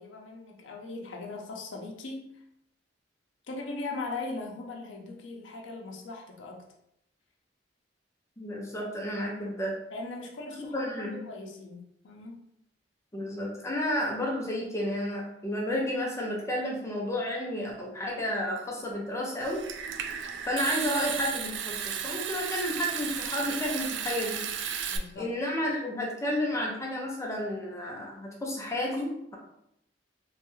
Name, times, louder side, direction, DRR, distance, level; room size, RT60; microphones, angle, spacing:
voice 1, 0.0-2.4 3.5-6.6 9.9-12.4 24.9-25.4, left 3 dB, 80° left, 1 dB, 0.6 m, -39 dB
voice 2, 8.4-9.8 10.7-11.2 13.1-19.6 20.4-24.5 25.2-29.4, left 1 dB, 15° left, -2 dB, 0.5 m, -31 dB
Water tap faucet / Sink (filling or washing) / Trickle dribble, 19.4-25.0, right 7 dB, 70° right, 0.3 m, -34 dB
3.1 x 2.3 x 3.0 m, 0.77 s
head